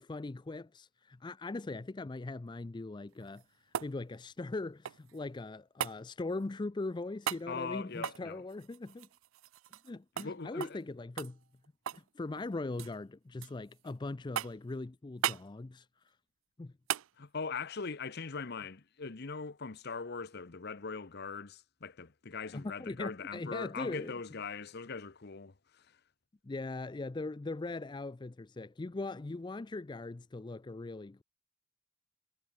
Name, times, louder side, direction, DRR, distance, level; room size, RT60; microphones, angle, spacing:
voice 1, 0.0-3.4 3.8-9.1 9.8-11.4 11.9-15.9 16.6-16.7 22.5-24.1 26.4-31.2, left 2 dB, 20° left, 0.4 m, -40 dB
sound 1, 3.1-5.2 5.8-6.0 7.2-7.5 8.0-9.9 10.2-10.3 10.6-10.8 11.2-12.1 12.4-13.0 13.4-13.9 14.4-14.7 15.2-15.5 16.9-17.1 19.5-19.6, right 10 dB, 85° right, 0.5 m, -38 dB
voice 2, 7.5-8.4 10.2-10.8 17.2-26.0, left 4 dB, 55° left, 0.9 m, -41 dB
head